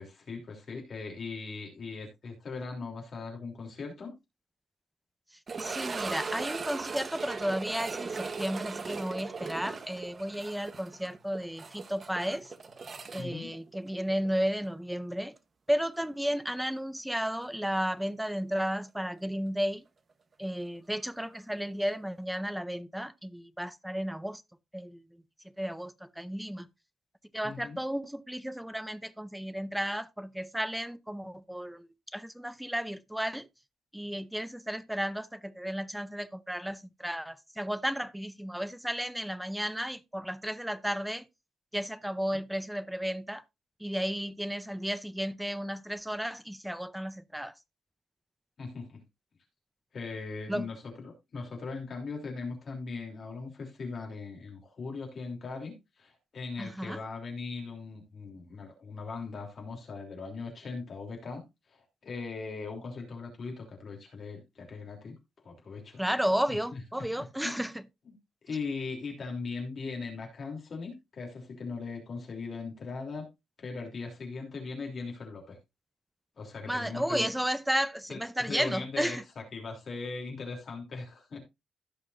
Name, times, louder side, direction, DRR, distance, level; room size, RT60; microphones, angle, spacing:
voice 1, 0.0-4.1 13.2-13.5 27.4-27.8 48.6-49.0 49.9-61.4 61.7-65.1 65.4-66.0 66.5-67.6 68.1-68.2 68.4-73.3 73.6-75.6 76.4-77.3 78.1-81.4, left 4 dB, 40° left, 3.1 m, -39 dB
sound 1, 5.5-14.4 14.6-14.7 15.4-15.5 18.1-18.2, right 4 dB, 30° right, 1.0 m, -38 dB
voice 2, 5.6-12.5 13.1-15.3 15.7-19.8 20.4-24.4 24.7-25.0 25.6-26.7 27.3-33.5 33.9-41.3 41.7-43.4 43.8-47.5 50.5-50.7 56.6-57.0 66.0-67.8 76.7-79.2, equal, ahead, 0.6 m, -33 dB
16.0 x 5.7 x 2.6 m
cardioid pair, 155°, 0 cm